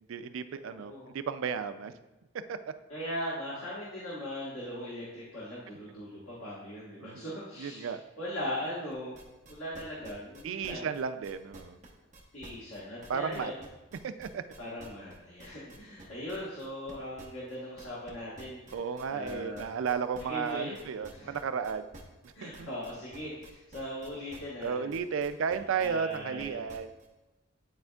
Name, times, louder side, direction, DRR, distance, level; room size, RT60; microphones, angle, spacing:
voice 1, 0.1-2.0 2.5-2.6 7.0-7.2 7.6-8.0 10.4-11.8 12.9-13.5 14.0-14.4 18.7-21.9 22.2-22.7 24.6-26.9, right 6 dB, 70° right, 11 dB, 0.3 m, -34 dB
voice 2, 0.6-1.1 2.9-9.2 9.5-10.9 12.3-13.6 14.6-18.8 19.1-19.7 20.2-20.8 21.1-21.3 22.3-24.8 25.8-26.6, left 1 dB, 85° left, -8 dB, 1.4 m, -39 dB
sound 1, 8.9-27.1, right 2 dB, 35° right, 0.9 m, -51 dB
10.5 x 4.3 x 2.3 m, 1.1 s
head